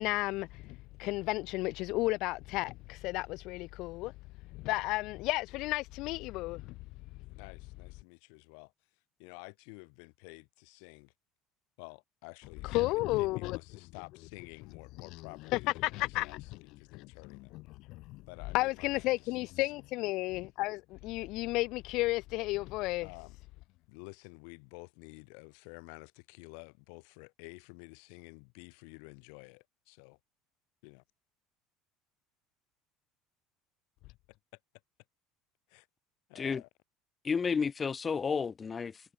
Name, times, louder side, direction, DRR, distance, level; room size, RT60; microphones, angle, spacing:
voice 1, 0.0-4.1 4.5-6.8 12.7-13.6 15.5-16.4 16.9-17.1 17.5-18.2 18.5-23.1, left 20 dB, 60° left, 0.5 m, -33 dB
voice 2, 7.3-8.7 9.2-11.1 11.8-17.6 18.3-19.3 19.6-19.7 23.0-23.4 23.9-30.2 30.8-31.0 35.7-35.9 36.3-36.7, left 40 dB or more, 75° left, 4.5 m, -51 dB
voice 3, 37.2-39.0, left 5 dB, 20° left, 2.7 m, -31 dB
cardioid pair, 155°, 0 cm